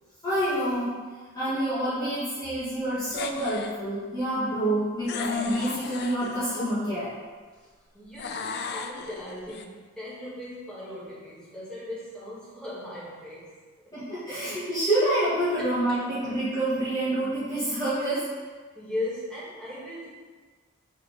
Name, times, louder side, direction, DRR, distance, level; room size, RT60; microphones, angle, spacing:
voice 1, 0.2-1.0 1.3-7.1 13.9-18.3, right 1 dB, 20° left, -12 dB, 1.6 m, -27 dB
sound 1, 3.1-3.8 5.1-6.7 8.2-9.6, left 5 dB, 55° left, 0.4 m, -36 dB
voice 2, 7.5-13.6 13.8-13.9 15.9-16.0 18.8-20.1, left 1 dB, 5° left, -9 dB, 1.9 m, -38 dB
4.7 x 4.5 x 5.0 m, 1.5 s
head